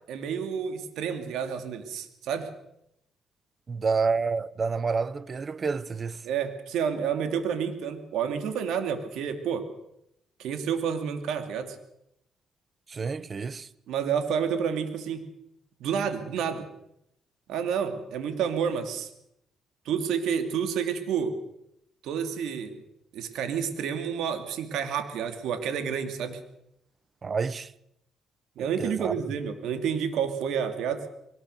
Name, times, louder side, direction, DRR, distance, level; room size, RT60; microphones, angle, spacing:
voice 1, 0.1-2.5 6.2-9.7 10.4-11.8 13.9-15.3 15.8-16.7 17.5-19.1 19.8-21.4 22.0-22.8 23.1-26.4 28.6-31.1, right 7 dB, 85° right, 2.6 m, -29 dB
voice 2, 3.7-6.2 12.9-13.7 27.2-27.7 28.8-29.1, right 4 dB, 40° right, 0.9 m, -29 dB
22.5 x 19.0 x 6.8 m
cardioid pair, 90°, 0 cm